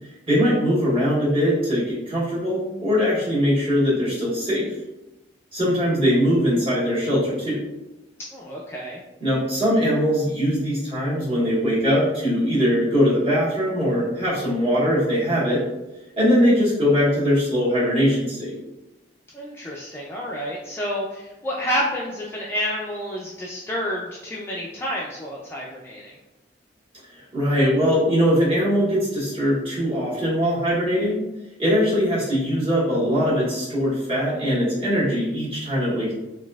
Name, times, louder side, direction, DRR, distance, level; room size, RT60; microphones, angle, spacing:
voice 1, 0.3-4.6 5.5-7.7 9.2-15.6 16.2-18.6 27.1-31.2 31.6-36.1, equal, 30° right, -9 dB, 1.4 m, -21 dB
voice 2, 8.3-9.0 19.3-26.2, equal, 15° left, -4 dB, 0.3 m, -29 dB
4.0 x 2.5 x 2.3 m, 0.99 s
head